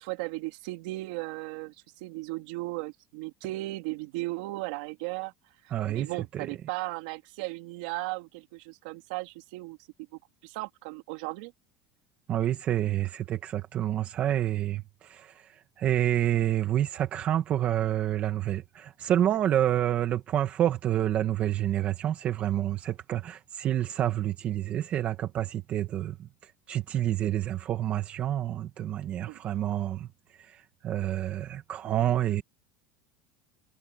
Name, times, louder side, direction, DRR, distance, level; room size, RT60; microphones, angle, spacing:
voice 1, 0.0-5.3 5.6-9.8 10.4-11.5 29.3-29.4, right 21 dB, 75° right, 2.8 m, -36 dB
voice 2, 5.7-6.5 12.3-32.4, right 11 dB, 35° right, 1.2 m, -28 dB
cardioid pair, 160°, 4 cm